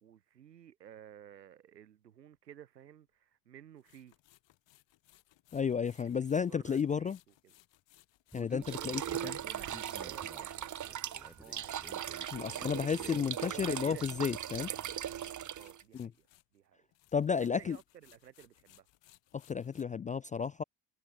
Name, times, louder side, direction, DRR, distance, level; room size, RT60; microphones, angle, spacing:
voice 1, 0.0-4.1 5.8-6.1 6.4-7.5 8.3-11.9 12.5-14.2 15.1-16.3 16.5-16.9 17.3-18.9, right 10 dB, 90° right, 2.9 m, -54 dB
sound 1, 2.3-2.4 3.8-16.7 16.9-19.8, left 16 dB, 65° left, 5.0 m, -65 dB
voice 2, 5.5-7.2 8.3-9.0 12.3-14.7 15.9-16.1 17.1-17.8 19.3-20.6, left 6 dB, 20° left, 0.3 m, -32 dB
Human voice, 8.3-15.1, equal, ahead, 6.1 m, -53 dB
sound 2, 8.6-15.8, right 10 dB, 40° right, 1.1 m, -39 dB
hypercardioid pair, 50°, 48 cm